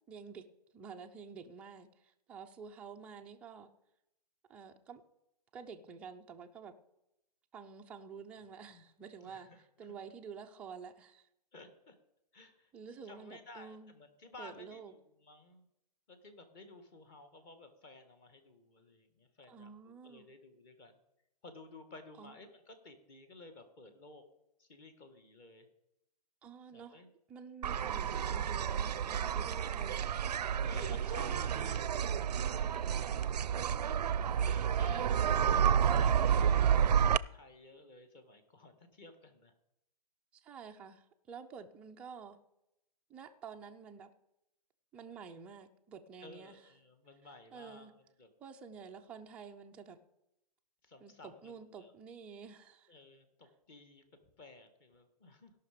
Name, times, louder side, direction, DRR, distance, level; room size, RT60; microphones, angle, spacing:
voice 1, 0.1-0.4 0.7-3.7 4.5-5.0 5.5-6.7 7.5-9.5 9.8-11.3 12.7-13.9 14.4-14.9 19.5-20.3 22.2-22.4 26.4-27.0 27.3-30.0 30.8-31.8 34.9-35.4 40.3-42.4 43.1-44.1 44.9-46.6 47.5-47.9 48.4-50.0 51.0-52.9, right 6 dB, 5° right, 3 dB, 0.3 m, -50 dB
voice 2, 9.2-9.6 11.5-11.9 12.3-12.7 13.0-15.7 16.1-20.9 21.4-24.2 24.6-25.7 26.7-27.1 27.6-28.1 29.3-29.4 30.4-31.9 32.7-33.5 34.4-35.2 35.8-39.5 46.2-47.9 48.2-48.3 50.8-51.9 52.9-54.1 54.4-55.5, left 2 dB, 25° left, 8 dB, 1.5 m, -55 dB
sound 1, 27.6-37.2, right 8 dB, 75° right, 0.4 m, -30 dB
16.5 x 5.8 x 5.0 m, 0.86 s
hypercardioid pair, 140°, 21 cm